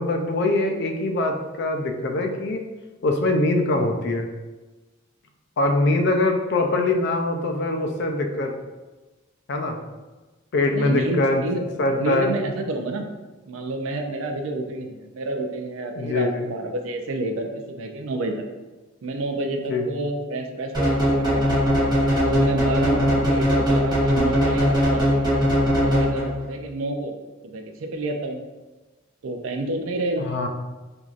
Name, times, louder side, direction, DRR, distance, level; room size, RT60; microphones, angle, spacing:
voice 1, 0.0-2.6 3.0-4.3 5.6-8.5 9.5-9.8 10.5-11.4 11.8-12.4 16.0-16.4 19.7-19.8 23.1-23.3 30.2-30.5, left 2 dB, 55° left, 4 dB, 0.4 m, -23 dB
voice 2, 10.7-11.6 12.0-13.1 13.5-18.3 19.0-21.6 22.1-25.2 25.8-27.1 27.5-28.4 29.2-30.2, right 2 dB, 80° right, 5 dB, 0.4 m, -29 dB
sound 1, 20.7-26.5, equal, 20° right, 1.0 m, -20 dB
4.5 x 2.5 x 2.4 m, 1.2 s
head